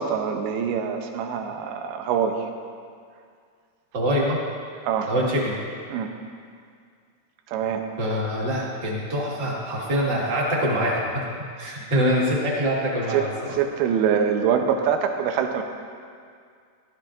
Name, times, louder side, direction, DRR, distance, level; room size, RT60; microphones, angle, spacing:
voice 1, 0.0-2.5 4.8-5.1 5.9-6.1 7.5-7.9 13.1-15.6, right 7 dB, 85° right, 4 dB, 2.7 m, -24 dB
voice 2, 3.9-4.4 5.1-5.6 8.0-13.3, equal, 45° right, -5 dB, 1.4 m, -24 dB
14.5 x 12.0 x 2.5 m, 2.1 s
omnidirectional pair, 4.5 m